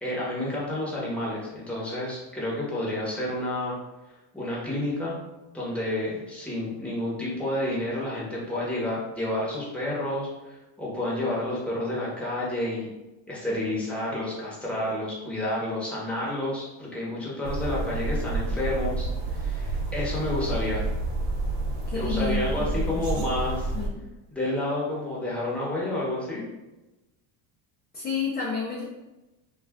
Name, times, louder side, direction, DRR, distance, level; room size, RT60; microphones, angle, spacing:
voice 1, 0.0-3.7 4.3-5.2 5.5-12.9 13.3-20.8 21.9-23.7 24.3-26.5, left 1 dB, 5° left, -6 dB, 0.8 m, -30 dB
sound 1, 17.4-23.9, right 2 dB, 75° right, 0.8 m, -29 dB
voice 2, 21.9-23.3 23.7-24.0 27.9-28.8, left 5 dB, 20° left, -5 dB, 0.4 m, -31 dB
2.4 x 2.4 x 3.3 m, 1.0 s
supercardioid pair, 125°, 47 cm